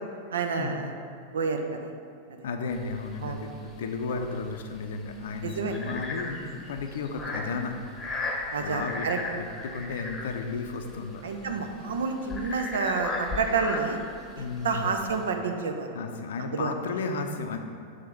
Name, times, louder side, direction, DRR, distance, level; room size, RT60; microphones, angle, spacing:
voice 1, 0.3-0.9 1.3-1.9 3.2-3.4 5.4-5.7 8.5-9.2 11.2-14.0 14.4-16.0 16.4-16.7, right 5 dB, 65° right, 5 dB, 0.5 m, -29 dB
voice 2, 2.4-7.7 8.6-9.1 9.3-11.2 11.9-12.0 14.4-14.9 15.9-17.6, left 4 dB, 60° left, 5 dB, 0.5 m, -33 dB
sound 1, 2.7-15.3, left 3 dB, 20° left, 0.9 m, -37 dB
6.6 x 3.4 x 5.3 m, 2.4 s
figure-of-eight pair, 90°, 0 cm